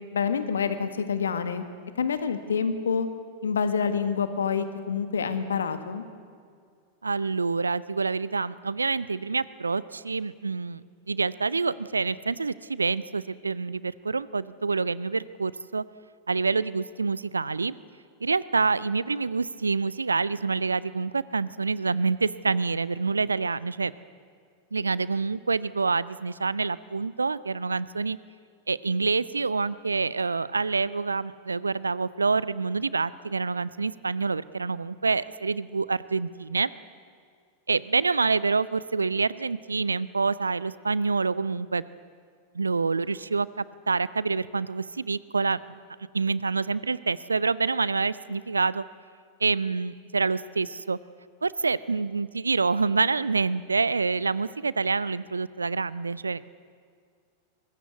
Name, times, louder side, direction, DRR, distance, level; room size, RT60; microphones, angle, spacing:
voice 1, 0.1-1.6 2.0-3.1 3.4-6.0, left 6 dB, 70° left, 10 dB, 1.7 m, -27 dB
voice 2, 7.0-15.8 16.3-17.7 18.2-23.9 24.7-28.2 28.7-36.7 37.7-41.8 42.5-45.6 46.1-48.8 49.4-51.0 51.4-56.4, right 4 dB, 75° right, 19 dB, 0.6 m, -27 dB
23.5 x 20.5 x 8.3 m, 2.1 s
figure-of-eight pair, 90°, 0 cm